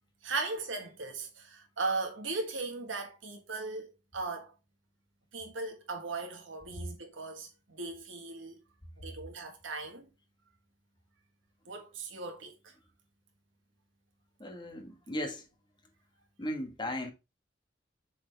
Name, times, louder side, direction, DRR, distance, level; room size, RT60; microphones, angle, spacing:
voice 1, 0.2-4.5 5.3-8.6 9.0-10.1 11.7-12.7, right 3 dB, 90° right, 1.5 m, -38 dB
voice 2, 14.4-15.4 16.4-17.1, left 1 dB, 25° left, 1.4 m, -36 dB
7.4 x 4.2 x 3.3 m
head